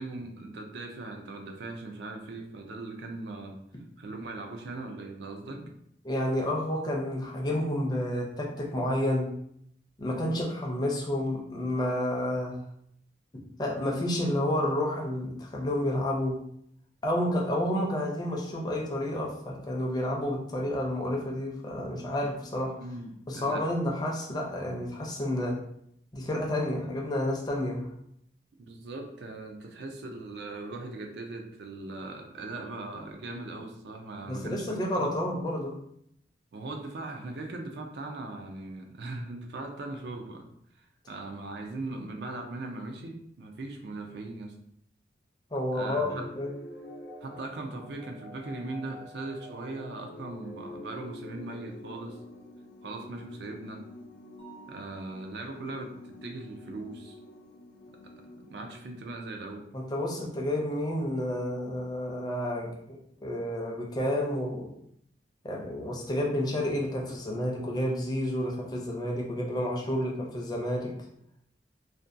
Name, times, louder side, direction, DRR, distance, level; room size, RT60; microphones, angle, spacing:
voice 1, 0.0-3.6 4.0-5.6 22.8-23.7 28.6-35.1 36.5-40.5 40.8-44.5 45.7-46.2 47.2-52.2 52.8-53.9 54.7-56.0 56.2-57.2 58.5-59.7, right 2 dB, 70° right, 3 dB, 0.4 m, -39 dB
voice 2, 6.0-9.3 10.0-12.6 13.6-16.4 17.0-22.7 23.3-25.6 26.1-27.9 34.3-35.8 45.5-46.5 59.7-64.7 65.4-70.9, left 1 dB, 25° left, -2 dB, 0.4 m, -30 dB
sound 1, 45.8-59.5, left 1 dB, 80° left, 0.5 m, -47 dB
Mallet percussion, 54.4-56.2, right 5 dB, 85° right, 0.9 m, -55 dB
2.5 x 2.2 x 2.5 m, 0.72 s
head